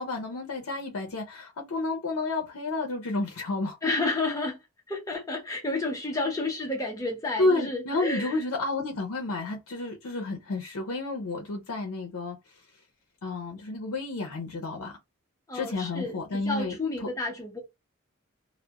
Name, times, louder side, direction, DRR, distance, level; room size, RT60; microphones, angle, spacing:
voice 1, 0.0-3.8 7.4-12.4 13.2-15.0 15.5-17.1, left 2 dB, 80° left, 0.5 m, -31 dB
voice 2, 3.8-4.6 4.9-8.4 15.5-17.6, left 2 dB, 15° left, 0.5 m, -31 dB
2.2 x 2.0 x 2.8 m
head